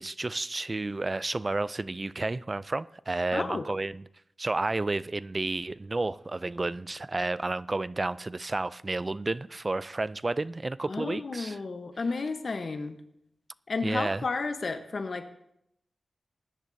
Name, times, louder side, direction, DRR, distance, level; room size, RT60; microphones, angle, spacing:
voice 1, 0.0-4.0 4.4-11.6 13.8-14.3, right 2 dB, 35° right, 0.3 m, -31 dB
voice 2, 3.3-3.7 10.9-13.0 13.7-15.3, left 3 dB, 60° left, 1.0 m, -32 dB
19.5 x 10.5 x 2.7 m
wide cardioid pair, 80°, 0 cm